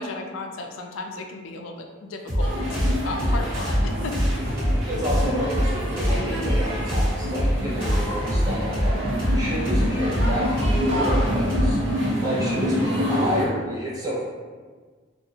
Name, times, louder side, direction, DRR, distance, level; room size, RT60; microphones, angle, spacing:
voice 1, 0.0-4.3, left 2 dB, 80° left, 3 dB, 0.3 m, -34 dB
sound 1, 2.3-13.4, equal, 45° right, 1.2 m, -25 dB
sound 2, 2.4-13.5, equal, 60° right, 0.6 m, -27 dB
voice 2, 4.9-9.0 9.3-11.8 12.2-14.2, equal, 20° right, -6 dB, 0.6 m, -29 dB
2.7 x 2.4 x 2.8 m, 1.5 s
head